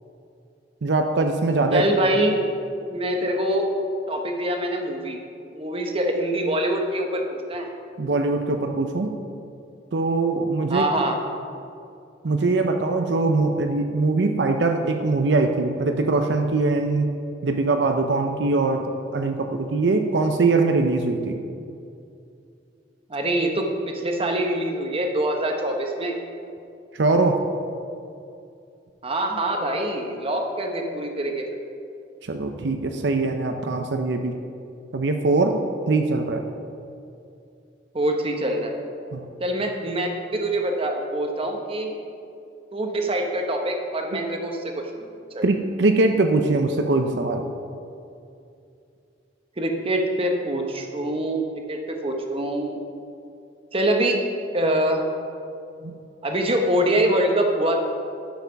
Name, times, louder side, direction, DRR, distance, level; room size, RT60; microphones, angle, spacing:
voice 1, 0.8-1.8 8.0-9.1 9.9-10.8 12.2-17.1 17.4-21.4 26.9-27.4 32.3-34.3 34.9-35.6 35.9-36.4 39.1-39.3 45.4-47.4 55.8-55.9, right 3 dB, 70° right, 5 dB, 0.6 m, -22 dB
voice 2, 1.7-2.4 2.9-3.7 4.1-5.2 5.5-7.7 10.7-11.2 23.1-26.2 29.0-31.6 37.9-38.8 39.4-42.0 42.7-44.7 45.0-45.1 45.3-45.4 49.6-52.8 53.7-54.2 54.5-55.0 56.2-57.8, right 1 dB, 30° right, 3 dB, 1.0 m, -24 dB
11.5 x 5.8 x 5.8 m, 2.5 s
head